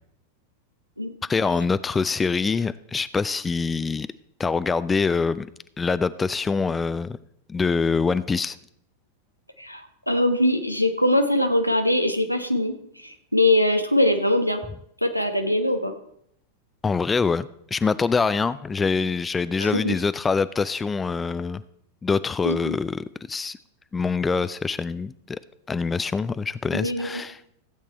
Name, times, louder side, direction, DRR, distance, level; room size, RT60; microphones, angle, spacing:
voice 1, 1.3-4.1 4.4-5.5 5.8-7.2 7.5-8.6 16.8-21.6 22.0-23.6 23.9-25.4 25.7-27.4, left 4 dB, 15° left, 16 dB, 0.4 m, -24 dB
voice 2, 9.6-14.6 15.0-15.9 19.6-19.9 22.4-22.8 26.7-27.2, left 1 dB, 90° left, 6 dB, 1.2 m, -22 dB
15.5 x 8.4 x 4.4 m, 0.71 s
figure-of-eight pair, 90°, 0 cm